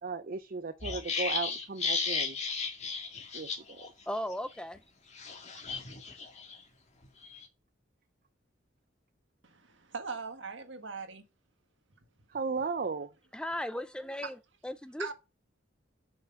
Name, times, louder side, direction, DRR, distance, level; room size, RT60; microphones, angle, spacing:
voice 1, 0.0-2.4 3.3-3.9 5.5-5.6 12.3-13.1, right 4 dB, 45° right, 0.5 m, -36 dB
sound 1, 0.8-3.9 4.1-4.3 5.1-6.6 7.0-7.4, left 5 dB, 35° left, 1.9 m, -35 dB
voice 2, 4.1-4.8 13.3-14.4 14.6-15.1, left 1 dB, 5° left, 0.5 m, -36 dB
voice 3, 9.4-11.2 14.2-14.3 15.0-15.1, right 4 dB, 70° right, 1.6 m, -40 dB
7.5 x 6.0 x 5.7 m
head